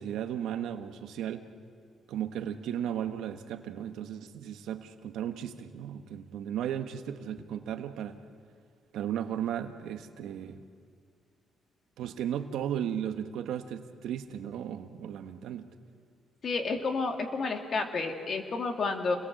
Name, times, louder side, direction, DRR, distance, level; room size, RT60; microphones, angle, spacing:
voice 1, 0.0-1.5 2.1-8.2 8.9-10.6 12.0-15.7, right 9 dB, 85° right, 8 dB, 1.3 m, -35 dB
voice 2, 16.4-19.2, left 4 dB, 50° left, 4 dB, 2.7 m, -30 dB
29.0 x 21.5 x 7.7 m, 2.2 s
cardioid pair, 85°, 0 cm